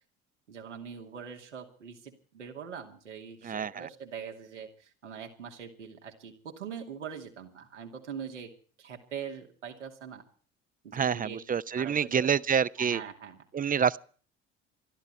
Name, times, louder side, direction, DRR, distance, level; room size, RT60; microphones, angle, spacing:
voice 1, 0.5-8.5 8.8-10.2 10.8-11.4 11.7-12.4 12.8-13.4, right 7 dB, 85° right, 2.6 m, -42 dB
voice 2, 3.4-3.9 10.9-13.0 13.5-14.0, right 7 dB, 25° right, 0.7 m, -27 dB
22.5 x 13.5 x 4.3 m
figure-of-eight pair, 60°, 35 cm